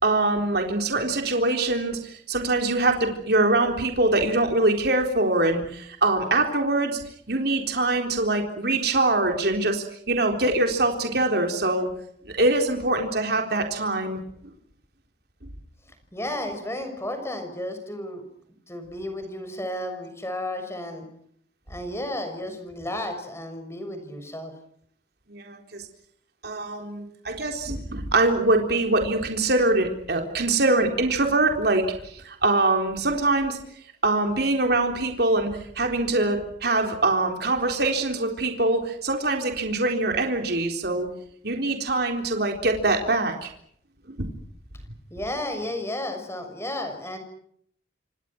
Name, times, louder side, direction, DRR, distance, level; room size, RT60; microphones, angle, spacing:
voice 1, 0.0-7.0 7.3-11.9 12.4-14.2 25.3-25.8 26.4-33.6 34.0-35.5 35.8-41.1 41.4-43.5 44.1-44.3, right 2 dB, 60° right, 3 dB, 3.8 m, -23 dB
voice 2, 16.1-18.2 18.7-21.1 21.7-24.5 45.1-47.2, left 1 dB, 15° left, 6 dB, 6.4 m, -33 dB
28.5 x 26.5 x 6.1 m, 0.66 s
head